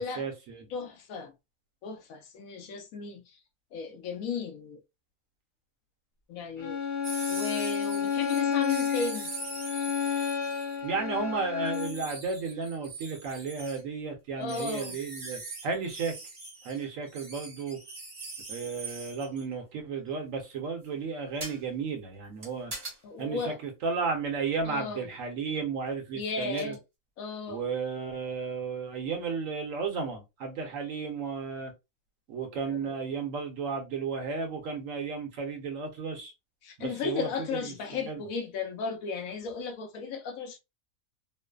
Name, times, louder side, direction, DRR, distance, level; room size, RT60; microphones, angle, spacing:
voice 1, 0.0-0.7 10.8-16.2 16.6-17.8 18.5-22.7 23.2-26.8 27.5-31.7 32.3-36.3 36.8-37.7 38.0-38.2, right 5 dB, 65° right, 1.1 m, -33 dB
voice 2, 0.7-1.3 1.8-3.2 3.7-4.8 6.3-6.8 7.3-9.3 14.3-15.0 23.0-23.6 24.6-25.0 26.2-26.8 27.2-27.6 32.7-32.9 36.6-40.6, left 5 dB, 75° left, 1.0 m, -35 dB
Bowed string instrument, 6.6-12.0, left 7 dB, 55° left, 0.5 m, -30 dB
sound 1, 7.0-10.8 11.6-13.8 14.5-19.4 21.4-21.6 22.4-23.0 24.6-24.7 26.4-26.8, right 3 dB, 35° right, 0.8 m, -42 dB
3.1 x 2.0 x 2.3 m
omnidirectional pair, 1.5 m